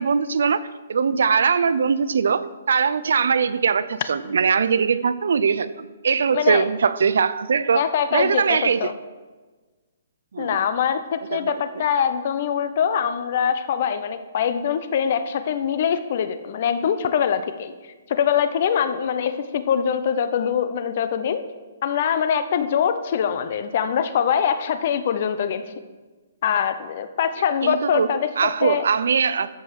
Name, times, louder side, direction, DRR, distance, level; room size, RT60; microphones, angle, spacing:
voice 1, 0.0-8.9 10.3-10.6 11.3-11.6 27.6-29.5, right 6 dB, 70° right, 15 dB, 0.5 m, -21 dB
voice 2, 6.3-6.6 7.7-8.9 10.4-17.7 18.1-21.4 21.8-25.6 26.4-28.3 28.6-28.8, left 8 dB, 40° left, 10 dB, 0.7 m, -23 dB
13.5 x 5.4 x 6.4 m, 1.3 s
hypercardioid pair, 170°, 0 cm